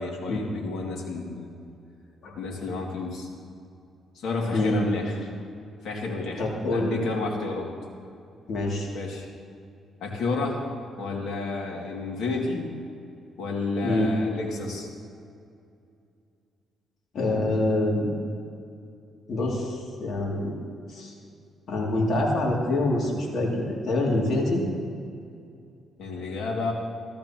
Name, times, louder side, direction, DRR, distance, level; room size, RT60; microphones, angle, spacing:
voice 1, 0.0-1.5 2.4-3.3 4.1-5.1 5.8-6.4 6.7-7.7 8.9-9.3 10.0-10.6 11.0-12.7 13.4-14.9 26.0-26.7, left 3 dB, 75° left, -1 dB, 2.3 m, -30 dB
voice 2, 4.5-4.9 6.4-7.0 8.5-8.9 13.8-14.1 17.1-18.1 19.3-20.6 20.9-21.1 21.7-24.6, left 2 dB, 60° left, -3 dB, 2.6 m, -25 dB
15.0 x 14.0 x 3.0 m, 2.4 s
cardioid pair, 90°, 0 cm